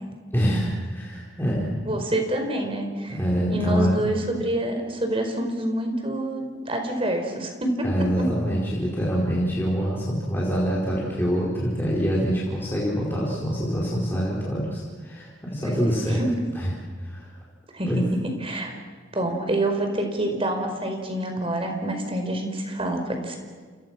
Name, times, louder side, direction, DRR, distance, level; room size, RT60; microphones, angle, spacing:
voice 1, 0.3-2.0 3.1-4.1 7.8-16.2 16.6-16.7 17.0-17.3 17.9-18.0, equal, 10° left, -5 dB, 4.6 m, -25 dB
voice 2, 1.8-3.2 3.5-8.3 15.6-16.2 17.7-17.9 18.2-18.7 19.1-23.4, right 1 dB, 30° right, 4 dB, 4.6 m, -27 dB
29.0 x 29.0 x 6.1 m, 1.5 s
head